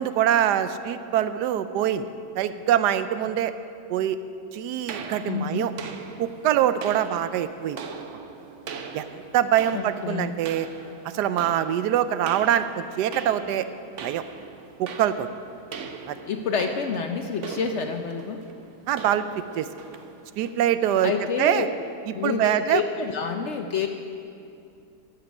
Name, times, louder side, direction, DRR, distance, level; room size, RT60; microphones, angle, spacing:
voice 1, 0.0-2.1 2.4-3.5 3.9-4.2 4.5-5.7 6.2-7.8 8.9-9.0 9.3-10.7 11.0-13.6 14.0-14.2 14.8-15.3 16.1-16.2 18.9-19.3 19.6-19.7 20.4-21.1 21.4-21.7 22.2-22.8, right 10 dB, 90° right, 12 dB, 1.2 m, -24 dB
sound 1, 4.9-21.2, right 5 dB, 55° right, 0.9 m, -41 dB
voice 2, 5.2-5.7 9.7-10.4 16.3-18.4 21.0-21.7 22.1-23.9, left 6 dB, 65° left, 5 dB, 0.7 m, -28 dB
15.0 x 7.7 x 6.0 m, 2.6 s
omnidirectional pair, 1.7 m